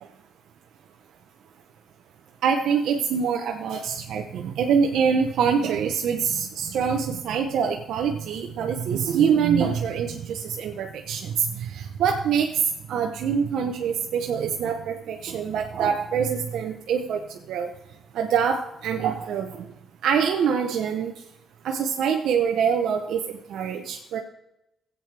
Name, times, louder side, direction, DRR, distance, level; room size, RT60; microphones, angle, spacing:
voice 1, 2.4-12.5 12.9-17.2 17.5-17.7 18.1-19.7 20.0-21.1 21.6-24.2, right 7 dB, 75° right, 3 dB, 0.8 m, -25 dB
16.0 x 8.3 x 3.3 m, 0.85 s
cardioid pair, 90°, 0 cm